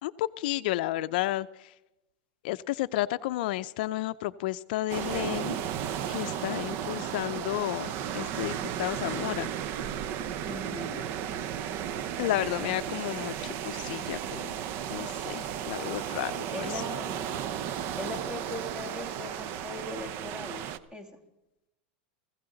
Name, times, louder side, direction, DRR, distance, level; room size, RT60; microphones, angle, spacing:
voice 1, 0.0-1.7 2.4-5.8 6.1-9.5 12.2-14.6 14.9-16.9, left 16 dB, 70° left, 14 dB, 0.5 m, -32 dB
sound 1, 4.9-20.8, right 9 dB, 50° right, 0.8 m, -34 dB
voice 2, 10.5-11.0 16.5-17.3 18.0-20.7 20.9-21.1, left 1 dB, 15° right, 4 dB, 2.7 m, -39 dB
18.5 x 16.0 x 3.9 m, 0.92 s
supercardioid pair, 130°, 5 cm